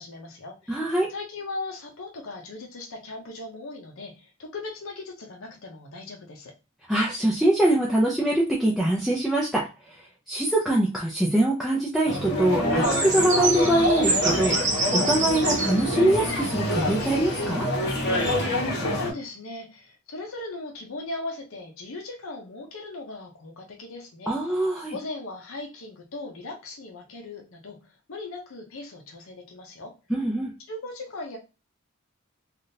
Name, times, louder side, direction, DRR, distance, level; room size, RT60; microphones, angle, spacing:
voice 1, 0.0-0.8 1.1-6.5 18.9-27.8 28.1-29.9 30.7-31.4, left 2 dB, 75° left, 1 dB, 0.7 m, -38 dB
voice 2, 0.7-1.1 6.9-10.0 10.3-14.6 14.9-17.7 24.3-25.0 30.1-30.5, right 1 dB, ahead, -4 dB, 0.5 m, -23 dB
sound 1, 12.0-19.1, left 1 dB, 50° left, 1.1 m, -26 dB
sound 2, 12.8-18.3, right 3 dB, 35° right, 0.8 m, -28 dB
sound 3, 15.9-19.0, left 2 dB, 35° left, 1.4 m, -42 dB
3.4 x 2.4 x 2.6 m, 0.30 s
head